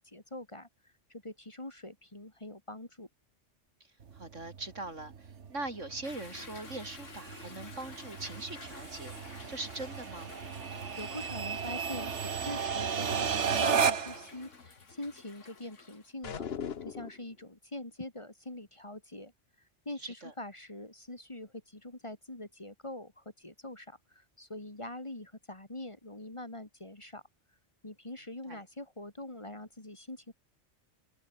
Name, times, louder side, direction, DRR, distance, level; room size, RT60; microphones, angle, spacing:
voice 1, 0.0-3.1 10.7-16.5 16.8-19.3 19.9-27.2 27.8-30.3, left 1 dB, 25° left, 2.3 m, -44 dB
sound 1, 4.0-14.3, right 6 dB, 70° right, 1.6 m, -34 dB
voice 2, 4.1-9.1 9.5-10.3 20.0-20.3 28.5-28.6, right 2 dB, 90° right, 5.3 m, -41 dB
Toilet flush / Drip / Trickle dribble, 6.0-16.1, left 5 dB, 90° left, 2.4 m, -52 dB
sound 2, 16.2-17.3, left 7 dB, 60° left, 1.2 m, -38 dB
omnidirectional pair, 1.2 m